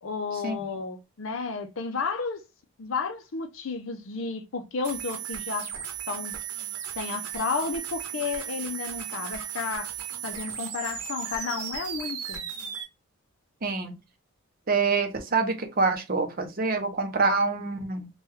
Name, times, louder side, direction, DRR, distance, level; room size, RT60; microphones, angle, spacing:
voice 1, 0.0-2.4 2.8-5.7 6.1-6.4 7.0-9.9 10.2-12.4, left 4 dB, 60° left, 0.5 m, -32 dB
sound 1, 4.8-12.8, right 9 dB, 80° right, 0.8 m, -36 dB
voice 2, 13.6-13.9 14.7-18.1, right 4 dB, 40° right, 0.6 m, -26 dB
3.3 x 2.2 x 3.1 m
head